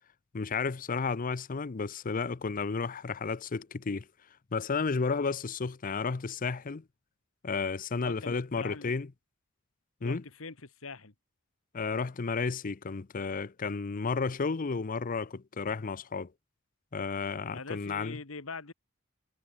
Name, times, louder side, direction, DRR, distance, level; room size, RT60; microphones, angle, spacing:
voice 1, 0.3-4.1 4.5-6.8 7.4-9.1 10.0-10.2 11.7-16.3 16.9-18.2, left 4 dB, 40° left, 0.6 m, -32 dB
voice 2, 8.0-9.0 10.0-11.1 17.5-18.7, left 4 dB, 80° left, 1.9 m, -43 dB
head